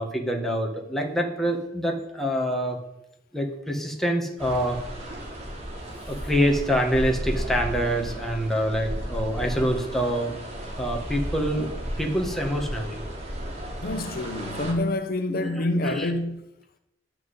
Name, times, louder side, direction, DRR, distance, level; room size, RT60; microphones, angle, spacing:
voice 1, 0.0-2.8 3.3-4.8 6.1-10.3 10.8-11.7 12.0-13.0 15.4-16.1, equal, ahead, 1.7 m, -26 dB
sound 1, 4.4-14.7, equal, 40° right, 3.0 m, -34 dB
voice 2, 13.8-16.4, left 1 dB, 55° left, 0.7 m, -27 dB
10.5 x 6.0 x 8.2 m
head